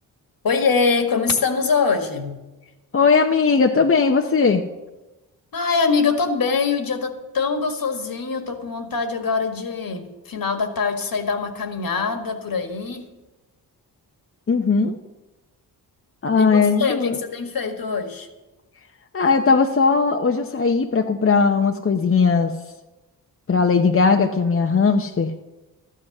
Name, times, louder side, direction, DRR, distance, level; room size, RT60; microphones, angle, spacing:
voice 1, 0.4-2.4 5.5-13.1 16.4-16.5 16.8-18.3, left 5 dB, 55° left, 6 dB, 1.9 m, -23 dB
voice 2, 2.9-4.6 14.5-15.0 16.2-17.2 19.1-22.5 23.5-25.3, left 5 dB, 35° left, 4 dB, 0.9 m, -18 dB
13.0 x 10.0 x 6.1 m, 1.1 s
cardioid pair, 60°, 40 cm